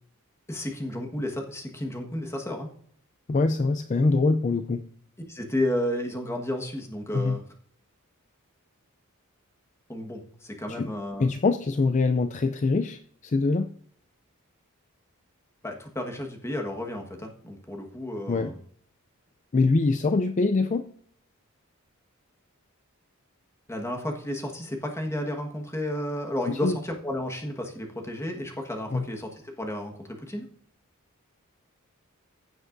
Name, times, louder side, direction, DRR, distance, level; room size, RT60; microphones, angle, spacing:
voice 1, 0.5-2.7 5.3-7.4 9.9-11.3 15.6-18.6 23.7-30.5, left 1 dB, 15° left, 2 dB, 1.4 m, -32 dB
voice 2, 3.3-4.8 7.1-7.4 10.7-10.9 11.2-13.7 18.3-18.5 19.5-20.8 26.5-26.8 28.9-29.0, left 3 dB, 35° left, 9 dB, 0.4 m, -24 dB
15.5 x 7.6 x 2.6 m, 0.62 s
head